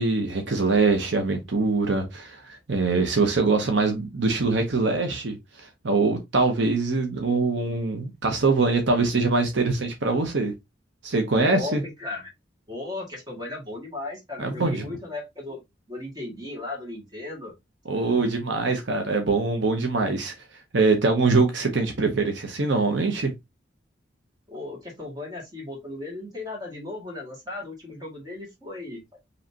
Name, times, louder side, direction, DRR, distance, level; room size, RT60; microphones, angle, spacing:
voice 1, 0.0-10.5 11.0-11.8 14.4-14.8 17.8-20.3 20.7-23.3, right 3 dB, 70° right, 0.8 m, -23 dB
voice 2, 11.5-12.3 12.7-15.6 15.9-17.5 24.5-29.2, left 2 dB, 20° right, 1.9 m, -36 dB
5.1 x 3.2 x 2.8 m
head